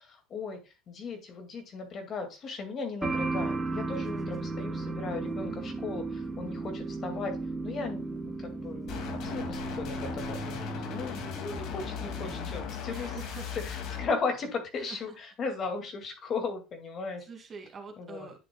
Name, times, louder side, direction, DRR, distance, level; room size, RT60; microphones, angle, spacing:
voice 1, 0.0-7.4 7.6-13.2 13.7-17.3 18.0-18.3, left 4 dB, 40° left, 6 dB, 2.1 m, -37 dB
sound 1, 3.0-12.5, right 3 dB, 15° right, 1.1 m, -35 dB
voice 2, 4.0-4.4 12.9-13.5 14.8-15.2 17.3-18.4, right 4 dB, 30° right, 4 dB, 2.4 m, -45 dB
sound 2, 8.9-14.1, left 6 dB, 60° left, 2.2 m, -37 dB
10.5 x 6.8 x 2.3 m, 0.28 s
cardioid pair, 125°, 0 cm